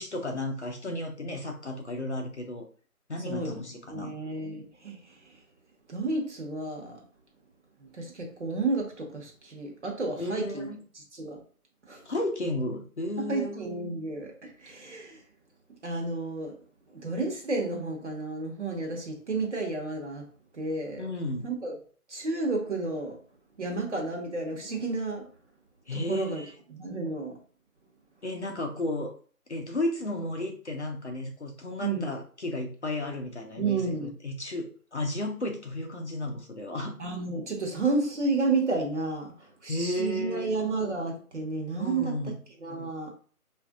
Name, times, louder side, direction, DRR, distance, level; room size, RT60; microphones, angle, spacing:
voice 1, 0.0-2.7 3.1-4.1 10.2-10.8 12.0-13.6 21.0-21.5 25.9-26.5 28.2-29.1 29.5-36.9 39.7-40.5 41.8-42.4, left 1 dB, 50° left, 0.6 m, -33 dB
voice 2, 3.2-5.4 5.9-7.0 7.8-10.7 10.9-11.4 11.9-12.0 13.3-15.2 15.8-16.5 16.9-20.3 20.5-21.1 21.4-21.8 22.1-23.2 23.6-25.3 26.1-26.4 26.7-27.4 31.8-32.1 33.6-34.1 37.0-42.3 42.6-43.1, right 3 dB, 50° right, 1.1 m, -31 dB
4.7 x 2.5 x 2.3 m
figure-of-eight pair, 165°, 45 cm